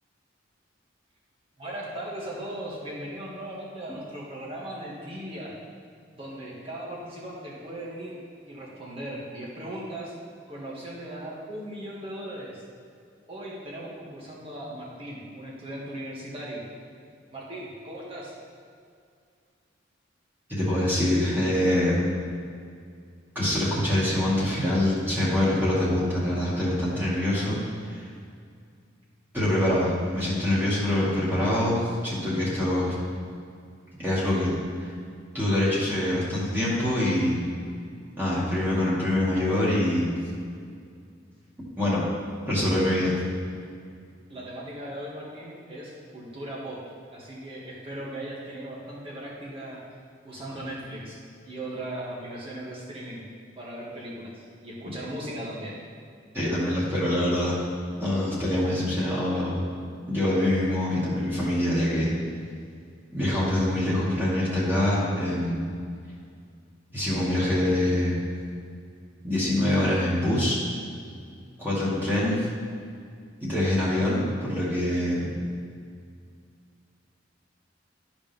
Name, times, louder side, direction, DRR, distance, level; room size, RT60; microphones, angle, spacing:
voice 1, 1.6-5.5 6.1-10.1 10.5-12.6 13.3-16.6 17.3-18.3 44.3-46.8 47.1-49.8 50.2-53.2 53.6-55.8, right 1 dB, 30° right, -5 dB, 1.9 m, -38 dB
voice 2, 20.5-22.0 23.4-27.6 27.9-28.0 29.3-32.9 34.0-34.6 35.3-37.4 38.2-40.1 41.8-42.0 42.5-43.1 56.3-57.6 58.0-59.6 60.1-62.1 63.1-65.6 66.9-68.2 69.2-70.6 71.6-72.4 73.4-75.3, left 1 dB, 10° right, -8 dB, 2.2 m, -24 dB
12.5 x 5.0 x 3.6 m, 2.2 s
head